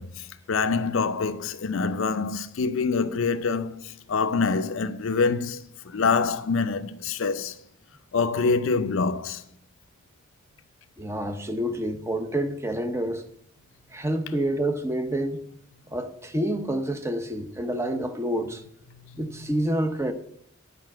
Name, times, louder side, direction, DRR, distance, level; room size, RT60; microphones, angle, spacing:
voice 1, 0.0-7.6 8.1-9.4 18.9-19.2, left 4 dB, 65° left, 0.5 m, -26 dB
voice 2, 11.0-13.2 13.9-15.4 15.9-18.6 19.2-20.1, right 1 dB, 10° right, 0.7 m, -28 dB
9.6 x 5.2 x 7.4 m
head